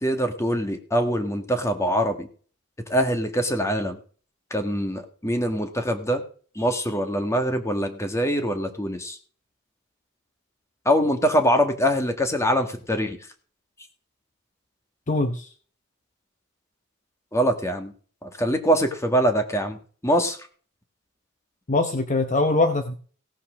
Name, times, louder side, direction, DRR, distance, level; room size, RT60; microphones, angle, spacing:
voice 1, 0.0-2.3 2.9-4.0 4.5-6.2 6.6-9.2 10.9-13.2 17.3-17.9 18.4-19.8 20.0-20.4, equal, 15° left, 6 dB, 1.6 m, -23 dB
voice 2, 15.1-15.5 21.7-22.9, left 2 dB, 35° left, 7 dB, 0.9 m, -22 dB
17.0 x 5.7 x 6.3 m, 0.43 s
head